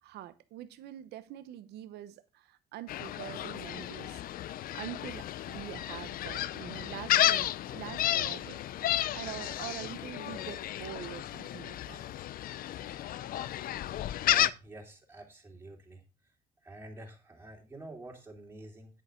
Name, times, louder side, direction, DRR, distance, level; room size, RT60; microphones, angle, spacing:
voice 1, 0.0-8.6 9.1-12.0, right 13 dB, 75° right, 0.9 m, -45 dB
Gull seagull, 2.9-14.5, left 13 dB, 60° left, 0.5 m, -32 dB
voice 2, 14.3-16.0 16.6-19.0, right 2 dB, 15° right, 3.1 m, -48 dB
9.6 x 8.7 x 3.7 m
cardioid pair, 110°, 17 cm